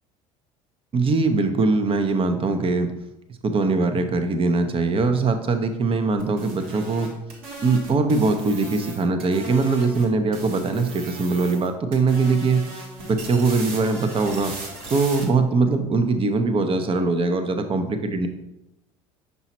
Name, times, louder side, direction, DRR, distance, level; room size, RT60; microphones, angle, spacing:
voice 1, 0.9-2.9 3.4-7.1 7.6-12.6 13.0-14.5 14.9-18.3, right 3 dB, 35° right, 8 dB, 0.8 m, -21 dB
sound 1, 6.2-10.0 10.3-11.7 11.9-15.2, right 2 dB, 65° right, 1.5 m, -38 dB
5.8 x 5.4 x 3.0 m, 0.89 s
hypercardioid pair, 80°, 16 cm